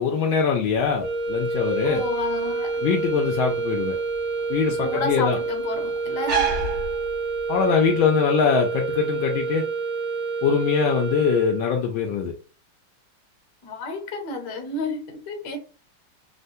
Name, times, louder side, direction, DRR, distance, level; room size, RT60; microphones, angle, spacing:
voice 1, 0.0-2.0 2.8-3.9 4.5-5.4 7.5-9.6 10.4-12.3, left 6 dB, 80° left, 1.3 m, -22 dB
sound 1, 0.7-7.6, right 4 dB, 65° right, 1.6 m, -32 dB
sound 2, 1.0-11.9, right 4 dB, ahead, 0.3 m, -28 dB
voice 2, 1.8-2.7 4.8-6.5 13.6-15.6, left 3 dB, 60° left, 1.4 m, -31 dB
3.6 x 2.2 x 2.6 m
omnidirectional pair, 2.2 m